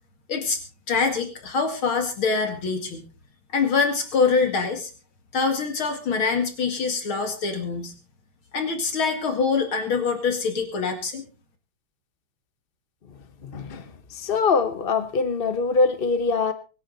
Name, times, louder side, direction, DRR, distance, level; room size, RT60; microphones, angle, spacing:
voice 1, 0.3-0.6 0.9-3.0 3.5-4.9 5.3-7.9 8.5-11.2, left 5 dB, 70° left, 6 dB, 3.0 m, -24 dB
voice 2, 13.4-13.8 14.1-16.5, left 4 dB, 45° left, 10 dB, 0.7 m, -23 dB
24.5 x 9.9 x 4.0 m, 0.34 s
omnidirectional pair, 2.4 m